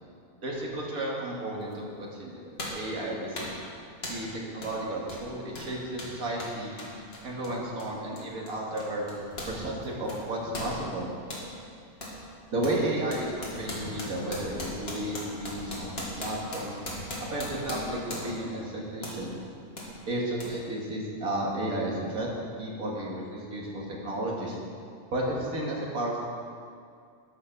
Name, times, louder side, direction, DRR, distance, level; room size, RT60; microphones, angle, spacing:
voice 1, 0.4-3.5 4.1-6.8 7.2-9.1 9.5-11.1 12.5-16.8 17.2-19.4 20.1-22.3 22.6-24.6 25.1-26.3, right 1 dB, 80° right, -3 dB, 2.2 m, -33 dB
sound 1, 1.7-1.8 2.6-2.9 3.4-3.6 4.0-4.3 4.6-4.8 5.1-9.6 9.8-11.5 12.0-12.2 12.6-18.5 19.0-19.2 19.8-19.9 20.4-20.5, left 1 dB, 45° left, 2.0 m, -38 dB
13.0 x 5.9 x 6.0 m, 2.3 s
omnidirectional pair, 1.5 m